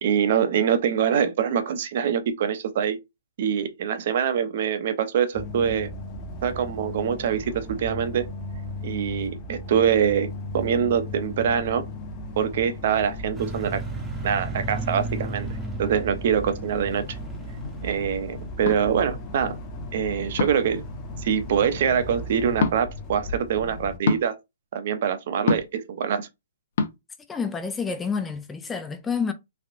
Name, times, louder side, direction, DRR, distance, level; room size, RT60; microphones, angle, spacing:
voice 1, 0.0-3.0 3.4-5.9 6.4-8.3 8.8-10.3 10.5-11.8 12.4-13.8 14.2-15.5 15.8-17.2 17.8-19.6 19.9-20.8 21.2-24.3 24.7-26.3, right 8 dB, 55° right, 0.6 m, -24 dB
sound 1, 5.3-24.0, left 1 dB, 30° left, 0.8 m, -36 dB
sound 2, 13.3-19.6, right 1 dB, 10° right, 0.8 m, -36 dB
sound 3, 18.6-18.8 20.4-20.7 22.6-22.8 24.0-24.3 25.5-25.8 26.8-26.9, left 4 dB, 60° left, 0.7 m, -24 dB
voice 2, 27.3-29.3, left 5 dB, 10° left, 0.3 m, -28 dB
3.4 x 2.4 x 2.4 m
hypercardioid pair, 140°, 0 cm